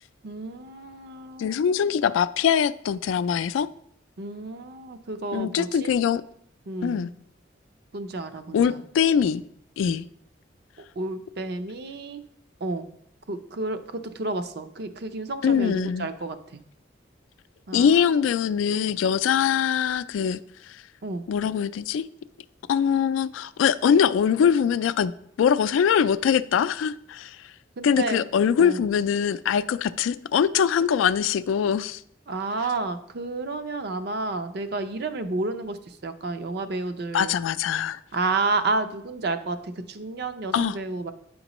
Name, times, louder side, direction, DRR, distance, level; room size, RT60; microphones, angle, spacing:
voice 1, 0.2-1.9 4.2-5.9 6.7-7.1 7.9-8.8 11.0-12.2 12.6-12.9 13.3-16.6 17.7-18.1 21.0-21.2 27.8-28.3 28.6-28.8 32.3-35.8 36.0-37.3 38.1-41.1, right 3 dB, 55° right, 9 dB, 0.5 m, -31 dB
voice 2, 1.4-3.7 5.3-6.2 6.8-7.1 8.5-9.4 9.8-10.0 15.4-16.1 17.7-20.4 21.3-22.1 22.7-25.1 25.4-27.4 27.8-32.0 37.1-38.0 40.5-40.8, left 7 dB, 90° left, 14 dB, 0.3 m, -22 dB
8.8 x 5.1 x 3.0 m, 0.71 s
head